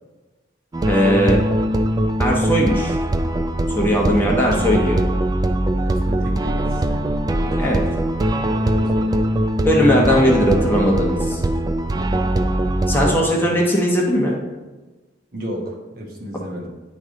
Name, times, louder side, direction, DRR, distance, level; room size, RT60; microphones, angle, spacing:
sound 1, 0.7-13.1, right 1 dB, 20° right, 0.3 m, -21 dB
voice 1, 0.9-1.4 2.2-3.0 3.7-5.0 7.6-7.8 9.6-11.4 12.9-14.3 16.3-16.5, equal, 10° left, -2 dB, 1.0 m, -18 dB
voice 2, 5.8-8.0 8.5-9.3 13.1-13.5 15.3-16.7, equal, 55° right, -1 dB, 1.2 m, -33 dB
9.5 x 3.2 x 3.7 m, 1.2 s
head